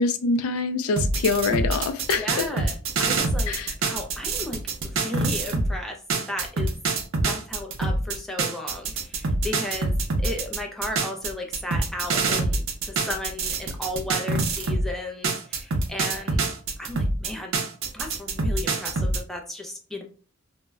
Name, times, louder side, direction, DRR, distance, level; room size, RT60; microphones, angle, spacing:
voice 1, 0.0-2.6 3.5-3.7, left 4 dB, 85° left, 0.4 m, -25 dB
sound 1, 1.0-5.7 6.1-14.9 15.2-19.2, right 3 dB, 65° right, 0.5 m, -25 dB
voice 2, 2.2-3.5 3.8-6.8 7.2-9.9 10.2-16.4 16.8-17.6 17.9-20.0, left 1 dB, ahead, 0.4 m, -35 dB
2.1 x 2.0 x 3.4 m
head